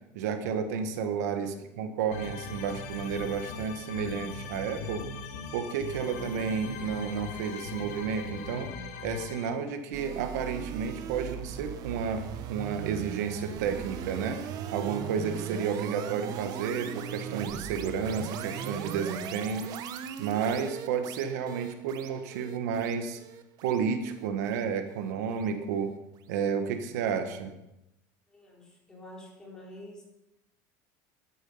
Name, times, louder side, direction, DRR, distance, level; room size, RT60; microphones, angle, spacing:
voice 1, 0.1-5.0 5.5-8.7 9.0-14.4 14.7-19.9 20.2-23.2 23.6-25.9 26.3-27.5, right 6 dB, 85° right, 7 dB, 1.5 m, -31 dB
voice 2, 1.4-1.7 28.3-30.0, left 1 dB, 10° left, -4 dB, 4.4 m, -48 dB
sound 1, 2.1-9.5, left 4 dB, 80° left, 2.3 m, -40 dB
sound 2, 9.9-25.1, right 9 dB, 45° right, 1.0 m, -38 dB
12.0 x 11.0 x 5.6 m, 0.89 s
supercardioid pair, 140°, 9 cm